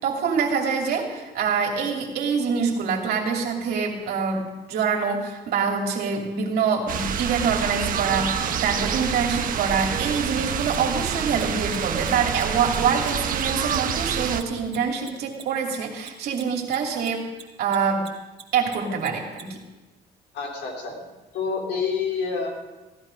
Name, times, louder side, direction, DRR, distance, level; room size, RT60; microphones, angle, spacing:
voice 1, 0.0-4.4 4.7-17.3 17.6-18.1 18.5-19.6, right 6 dB, 70° right, 1 dB, 2.8 m, -25 dB
sound 1, 6.9-14.4, right 8 dB, 55° right, 1.2 m, -27 dB
Mechanisms, 10.7-17.4 17.7-19.4, right 7 dB, 35° right, 2.2 m, -42 dB
voice 2, 20.3-21.0 21.3-22.5, left 5 dB, 80° left, 0 dB, 3.7 m, -27 dB
16.0 x 11.5 x 5.3 m, 1.1 s
cardioid pair, 110°, 17 cm